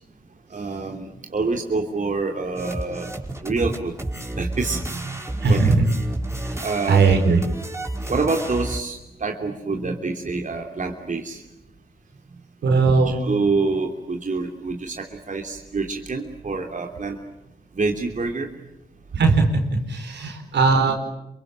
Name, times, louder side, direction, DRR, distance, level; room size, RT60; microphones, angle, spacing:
voice 1, 0.5-3.1 3.4-4.0 4.4-5.6 6.1-7.0 8.1-11.4 12.7-17.2 17.7-18.5, right 3 dB, 45° right, 2 dB, 3.1 m, -27 dB
sound 1, 2.5-8.8, right 1 dB, 15° right, 5.3 m, -31 dB
voice 2, 5.4-5.9 6.4-6.6 6.9-7.4 12.6-13.2 19.1-19.5 19.9-20.9, right 4 dB, 75° right, 4 dB, 5.0 m, -18 dB
27.5 x 23.5 x 9.1 m, 0.91 s
supercardioid pair, 50°, 18 cm